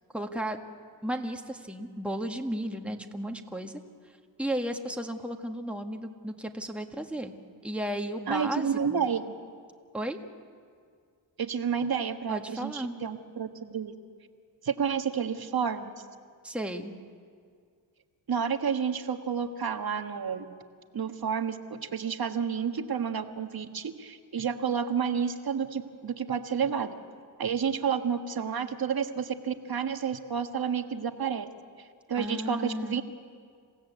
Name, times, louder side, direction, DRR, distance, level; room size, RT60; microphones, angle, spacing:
voice 1, 0.1-0.6 1.0-3.7 4.4-7.3 7.6-9.0 9.9-10.2 12.3-13.0 16.4-16.9 32.2-33.0, right 1 dB, 5° right, 3 dB, 1.6 m, -34 dB
voice 2, 8.3-9.3 11.4-13.9 14.6-15.9 18.3-20.4 20.9-26.9 27.4-31.5 32.1-33.0, right 7 dB, 50° right, 7 dB, 1.6 m, -30 dB
27.5 x 16.5 x 8.2 m, 2.1 s
cardioid pair, 75°, 46 cm